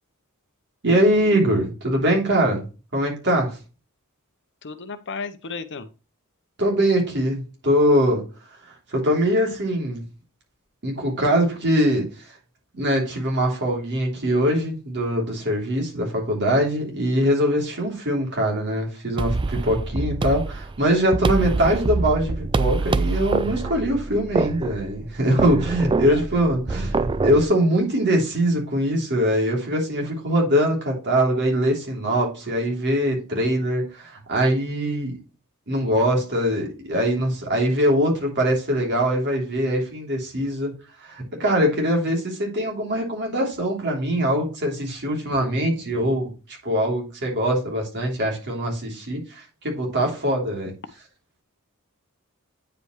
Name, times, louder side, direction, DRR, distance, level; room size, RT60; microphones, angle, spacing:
voice 1, 0.8-2.6 2.9-3.6 6.6-8.2 8.7-10.0 10.8-12.3 12.7-35.2 35.7-40.7 41.0-50.7, equal, 55° right, 0 dB, 3.1 m, -22 dB
voice 2, 4.6-5.9 26.0-26.2, left 4 dB, 55° left, 11 dB, 0.8 m, -33 dB
sound 1, 19.2-27.5, right 3 dB, 20° right, 0.4 m, -25 dB
9.4 x 5.1 x 3.1 m, 0.33 s
head